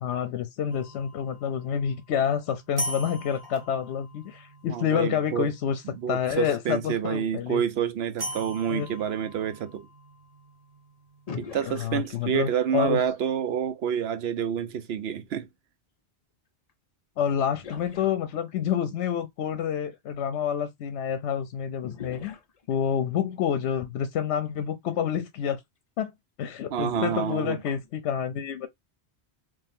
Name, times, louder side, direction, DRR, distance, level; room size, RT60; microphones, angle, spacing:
voice 1, 0.0-5.8 6.1-7.6 8.7-8.9 11.6-13.0 17.2-22.3 22.7-25.6 26.0-26.1 26.4-28.7, left 8 dB, 80° left, 0.8 m, -28 dB
sound 1, 0.7-6.8 8.2-12.2, equal, 30° right, 1.0 m, -41 dB
voice 2, 4.7-5.5 5.9-9.9 11.4-15.5 26.7-27.6, right 8 dB, 65° right, 0.8 m, -28 dB
sound 2, 11.3-12.7 16.7-16.8 17.5-18.7 21.8-23.1 24.5-24.6 25.0-25.1 26.8-28.0, left 6 dB, 45° left, 0.6 m, -43 dB
3.2 x 2.7 x 3.5 m
omnidirectional pair, 1.2 m